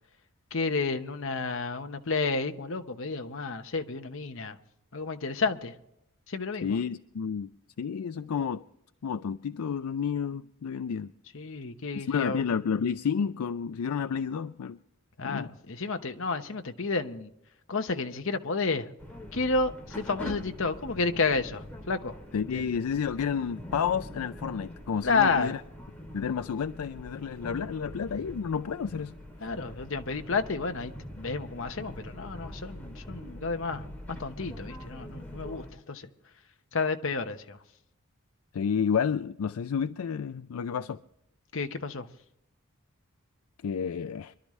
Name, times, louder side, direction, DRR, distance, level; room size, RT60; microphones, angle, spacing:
voice 1, 0.5-4.6 4.9-5.7 6.3-6.8 11.3-12.4 15.2-17.3 17.7-18.9 19.3-22.2 22.5-22.7 25.0-25.6 29.4-33.9 34.2-36.1 36.7-37.6 41.5-42.1, left 4 dB, 60° left, 1.0 m, -31 dB
voice 2, 6.6-7.5 7.8-8.6 9.0-11.1 11.9-14.8 15.2-15.5 22.3-25.6 26.1-29.1 38.5-41.0 43.6-44.3, left 6 dB, 80° left, 0.4 m, -30 dB
sound 1, 19.0-35.7, left 1 dB, 5° left, 2.8 m, -43 dB
25.5 x 12.0 x 3.2 m
head